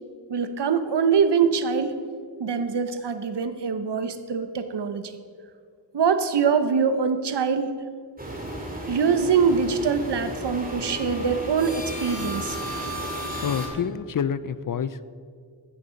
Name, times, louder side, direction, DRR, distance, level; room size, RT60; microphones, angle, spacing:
voice 1, 0.3-2.0 2.4-5.1 5.9-7.7 8.9-12.6, right 6 dB, 60° right, 10 dB, 0.9 m, -23 dB
sound 1, 8.2-13.7, right 1 dB, 20° right, 2.6 m, -33 dB
voice 2, 13.4-15.1, left 7 dB, 45° left, 16 dB, 0.5 m, -28 dB
16.0 x 6.6 x 5.2 m, 2.1 s
cardioid pair, 65°, 46 cm